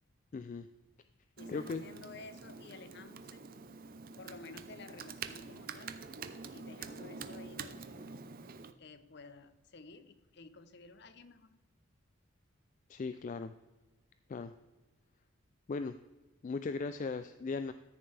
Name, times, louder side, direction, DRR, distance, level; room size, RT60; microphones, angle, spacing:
voice 1, 0.3-0.7 1.5-1.8 12.9-13.5 14.3-14.5 15.7-16.0 16.4-17.7, left 4 dB, 40° left, 10 dB, 0.3 m, -37 dB
voice 2, 1.4-3.4 4.2-6.0 6.5-8.3 8.8-11.6, left 3 dB, 55° left, 12 dB, 0.7 m, -53 dB
Computer keyboard, 1.4-8.7, right 5 dB, 45° right, 0.5 m, -46 dB
13.5 x 6.9 x 3.3 m, 1.1 s
head